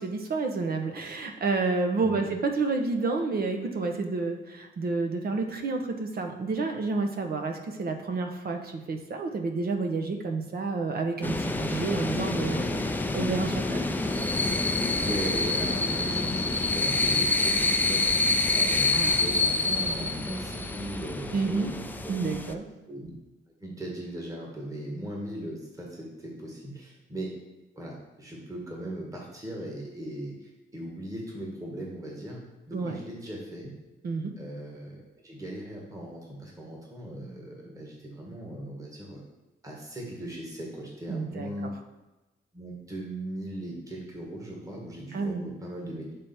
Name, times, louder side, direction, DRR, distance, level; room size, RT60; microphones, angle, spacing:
voice 1, 0.0-13.8 18.9-19.2 21.3-21.7 22.1-22.6 32.7-33.0 34.0-34.3 41.1-41.7 45.1-45.4, right 3 dB, 50° right, 4 dB, 0.9 m, -30 dB
voice 2, 2.0-2.3 14.8-22.2 22.9-23.1 23.6-27.4 27.7-32.4 32.7-33.7 34.4-39.2 39.6-41.7 42.5-46.1, right 1 dB, 15° right, -2 dB, 1.6 m, -38 dB
sound 1, 11.2-22.5, left 2 dB, 10° left, 0.5 m, -27 dB
7.3 x 3.5 x 4.3 m, 1.1 s
cardioid pair, 90°, 20 cm